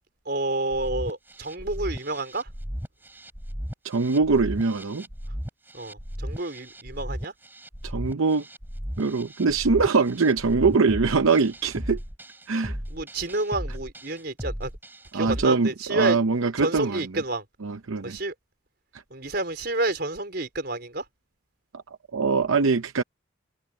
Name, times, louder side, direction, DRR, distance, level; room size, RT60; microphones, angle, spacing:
voice 1, 0.3-2.5 5.7-7.3 12.9-14.7 15.1-16.2 16.6-17.4 18.0-18.3 19.1-21.0, right 2 dB, 50° right, 4.7 m, -29 dB
sound 1, 0.7-15.4, equal, 10° right, 3.1 m, -36 dB
voice 2, 3.8-5.1 7.8-8.4 9.0-12.0 12.5-12.8 15.1-17.1 17.6-18.2 21.7-21.8 22.1-23.0, right 4 dB, 90° right, 0.7 m, -23 dB
head